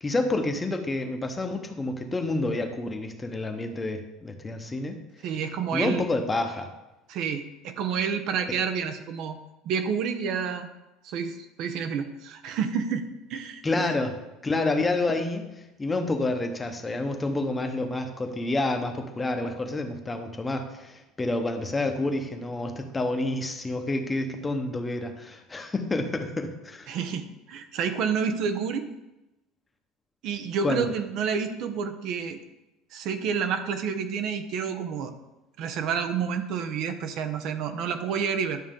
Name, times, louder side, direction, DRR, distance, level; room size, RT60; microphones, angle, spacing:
voice 1, 0.0-5.0 5.7-6.7 13.6-14.2 14.4-15.4 15.8-27.0 30.6-30.8, left 2 dB, 15° left, 5 dB, 0.9 m, -28 dB
voice 2, 5.2-6.0 7.1-9.4 9.6-10.7 11.0-13.9 26.9-28.9 30.2-32.4 32.9-35.1 35.6-38.6, right 6 dB, 55° right, 8 dB, 0.8 m, -29 dB
11.0 x 6.3 x 3.7 m, 0.98 s
cardioid pair, 145°, 0 cm